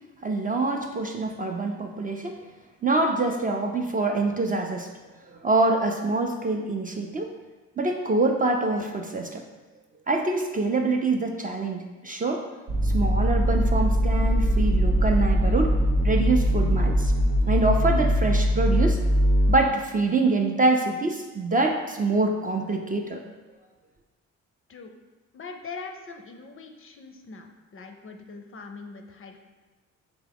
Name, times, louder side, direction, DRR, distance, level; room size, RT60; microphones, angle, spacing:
voice 1, 0.2-2.4 2.8-4.9 5.4-7.3 7.8-9.4 10.1-12.4 12.8-15.7 16.0-17.1 17.5-19.0 19.5-23.2, right 3 dB, 25° right, 2 dB, 0.4 m, -25 dB
sound 1, 12.7-19.5, equal, 75° right, 1.0 m, -21 dB
voice 2, 25.3-29.4, left 4 dB, 40° left, 5 dB, 0.5 m, -42 dB
3.6 x 3.0 x 3.4 m, 1.2 s
supercardioid pair, 60°, 35 cm